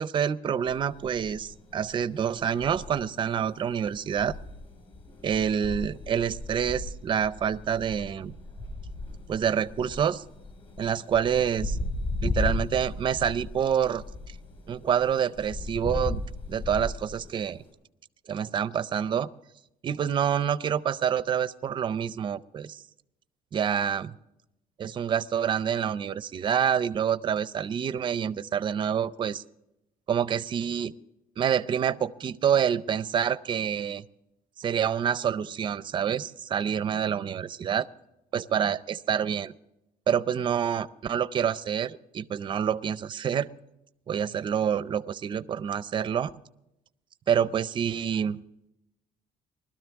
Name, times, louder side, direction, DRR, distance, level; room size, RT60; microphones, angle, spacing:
voice 1, 0.0-4.4 5.2-8.3 9.3-10.2 10.8-11.8 12.2-14.0 14.7-17.6 18.3-19.3 19.8-22.8 23.5-24.1 24.8-29.4 30.1-30.9 31.4-34.1 34.6-37.9 38.3-39.5 40.1-43.5 44.1-46.3 47.3-48.4, right 8 dB, 30° right, 15 dB, 0.4 m, -27 dB
sound 1, 0.7-17.7, left 2 dB, 35° left, 4.5 m, -36 dB
20.5 x 12.5 x 3.5 m, 0.87 s
cardioid pair, 155°, 16 cm